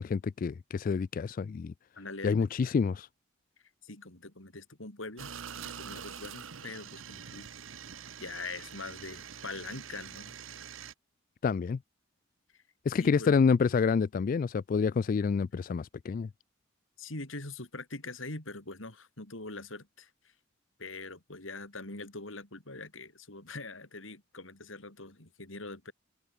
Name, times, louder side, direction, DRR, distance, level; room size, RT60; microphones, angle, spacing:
voice 1, 0.0-1.7 2.2-3.1 11.4-11.8 12.9-16.3, left 5 dB, 45° left, 0.3 m, -28 dB
voice 2, 2.0-2.5 3.8-5.3 5.6-7.5 8.2-10.4 12.5-12.6 12.9-13.3 17.0-20.1 20.8-25.9, left 3 dB, 85° left, 5.1 m, -43 dB
sound 1, 5.2-10.9, right 7 dB, 90° right, 1.2 m, -45 dB
head